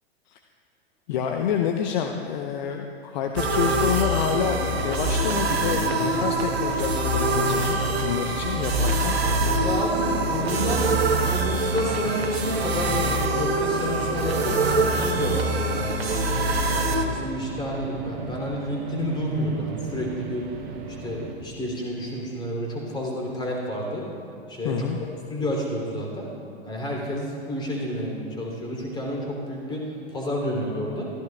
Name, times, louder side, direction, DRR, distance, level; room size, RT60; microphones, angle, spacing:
voice 1, 1.1-9.2 24.6-25.0, left 7 dB, 45° left, 3 dB, 0.8 m, -28 dB
sound 1, 3.4-17.0, right 2 dB, 70° right, 1.3 m, -24 dB
sound 2, 3.9-21.3, right 4 dB, 45° right, 1.4 m, -36 dB
voice 2, 9.6-11.0 11.2-16.1 16.3-20.5 21.0-24.1 24.5-26.3 26.7-31.1, left 1 dB, 15° left, -2 dB, 3.0 m, -30 dB
23.0 x 15.0 x 2.3 m, 2.9 s
figure-of-eight pair, 100°, 32 cm